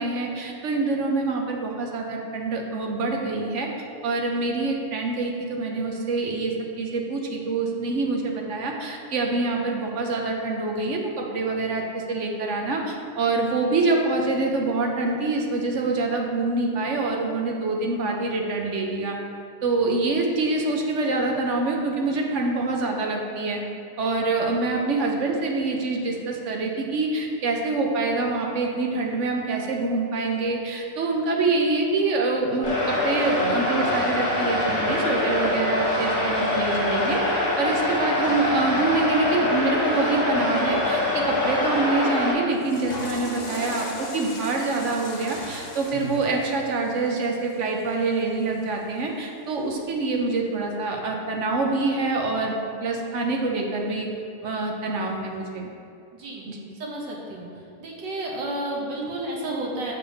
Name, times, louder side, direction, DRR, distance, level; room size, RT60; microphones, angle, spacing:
voice 1, 0.0-3.7 4.0-19.2 19.6-23.6 24.0-37.2 37.6-52.5 52.8-54.1 54.4-55.7 56.5-56.6, right 3 dB, 55° right, 1 dB, 0.9 m, -25 dB
sound 1, 32.6-42.3, left 1 dB, 40° left, 1.8 m, -24 dB
Water / Toilet flush, 42.5-48.7, left 2 dB, 60° left, 0.4 m, -37 dB
voice 2, 56.1-56.5 56.8-57.5 57.8-59.9, right 1 dB, 75° right, -2 dB, 1.8 m, -31 dB
6.7 x 4.8 x 5.2 m, 2.6 s
omnidirectional pair, 2.0 m